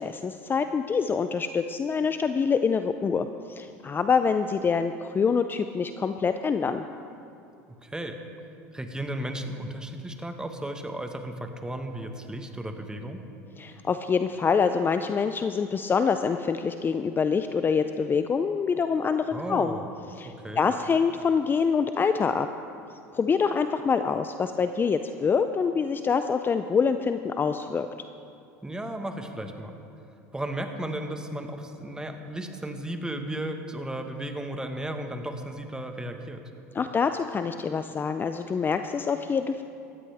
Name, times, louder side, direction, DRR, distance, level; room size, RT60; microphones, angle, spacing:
voice 1, 0.0-6.8 13.6-19.8 20.2-22.5 23.1-27.9 36.7-39.6, left 5 dB, 25° left, 9 dB, 0.5 m, -25 dB
voice 2, 7.8-8.2 8.7-13.2 19.3-19.9 20.2-20.7 28.6-29.8 30.3-36.4, right 1 dB, 10° right, 5 dB, 1.5 m, -34 dB
18.0 x 14.0 x 3.6 m, 2.6 s
hypercardioid pair, 85°, 8 cm